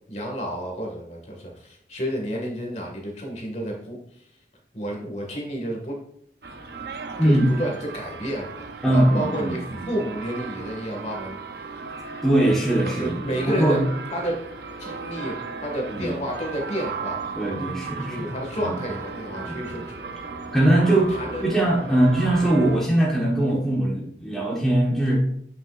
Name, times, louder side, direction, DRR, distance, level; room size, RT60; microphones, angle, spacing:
voice 1, 0.1-4.2 4.7-6.0 7.2-11.4 12.9-13.8 14.1-14.4 14.8-15.4 15.6-17.2 18.0-19.9 21.1-21.6 21.9-22.0, equal, 40° left, 0 dB, 2.0 m, -31 dB
sound 1, 6.4-22.8, right 4 dB, 65° right, 0.7 m, -36 dB
voice 2, 8.8-9.8 12.2-13.8 15.9-16.1 17.3-18.3 18.6-18.7 19.4-19.8 20.5-25.2, right 1 dB, ahead, -5 dB, 1.4 m, -21 dB
9.1 x 5.9 x 2.6 m, 0.68 s
head